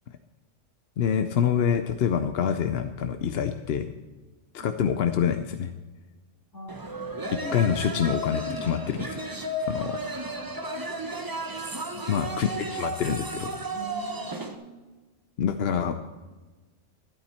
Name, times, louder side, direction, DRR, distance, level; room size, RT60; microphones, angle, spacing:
voice 1, 1.0-3.9 4.5-5.7 7.5-9.3 9.6-10.0 12.1-13.5 15.4-16.1, left 8 dB, 60° left, 8 dB, 0.8 m, -26 dB
sound 1, 6.7-14.6, right 1 dB, 20° right, 0.8 m, -33 dB
voice 2, 7.4-7.7 9.9-11.1 11.9-12.5 13.7-14.8, right 1 dB, 15° left, -8 dB, 5.0 m, -44 dB
13.0 x 11.5 x 4.3 m, 1.2 s
omnidirectional pair, 1.3 m